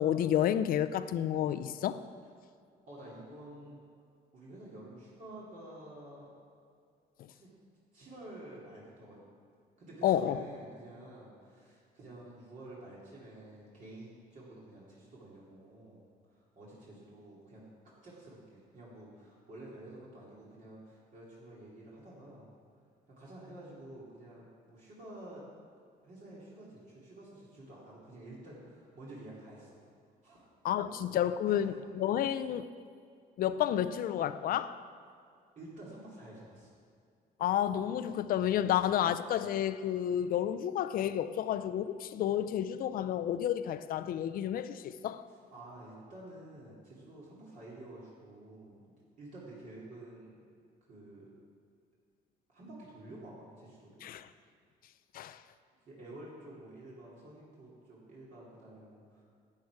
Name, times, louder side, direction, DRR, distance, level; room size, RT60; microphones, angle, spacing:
voice 1, 0.0-2.0 10.0-10.4 30.6-32.7 33.4-34.8 37.4-45.3 54.0-54.3 55.1-55.4, left 10 dB, 60° left, 12 dB, 0.5 m, -30 dB
voice 2, 2.9-3.8 4.3-6.3 7.3-7.5 7.9-9.3 9.8-16.0 16.3-17.6 18.0-22.5 23.1-25.5 26.0-29.8 30.2-30.5 30.9-31.0 31.5-31.6 35.6-36.7 38.5-38.7 45.3-48.8 49.2-50.4 50.9-51.3 52.5-54.1 55.9-59.2, right 1 dB, 50° right, -6 dB, 2.7 m, -50 dB
11.0 x 8.5 x 4.8 m, 2.3 s
cardioid pair, 110°, 17 cm